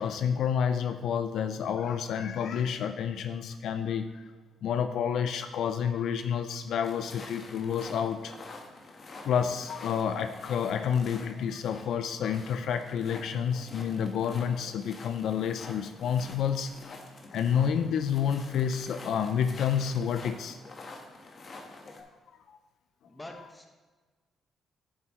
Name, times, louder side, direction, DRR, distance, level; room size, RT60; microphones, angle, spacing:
voice 1, 0.0-4.3 4.6-8.3 9.2-16.7 17.3-20.6 22.0-22.1 22.5-22.6, left 7 dB, 70° left, 9 dB, 0.4 m, -29 dB
sound 1, 6.8-22.0, left 3 dB, 45° left, 1.2 m, -47 dB
voice 2, 23.1-23.7, left 1 dB, 15° left, 3 dB, 1.3 m, -45 dB
10.0 x 7.4 x 3.1 m, 1.3 s
cardioid pair, 90°, 0 cm